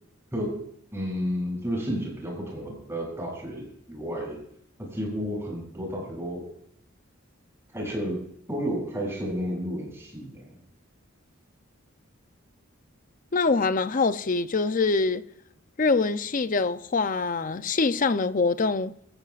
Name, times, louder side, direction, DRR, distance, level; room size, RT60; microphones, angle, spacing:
voice 1, 0.9-4.4 4.8-6.4 7.7-8.2 8.5-10.5, equal, 10° right, 7.6 m, -31 dB
voice 2, 13.3-15.3 15.8-19.0, left 4 dB, 40° left, 0.6 m, -24 dB
22.5 x 15.0 x 2.5 m
head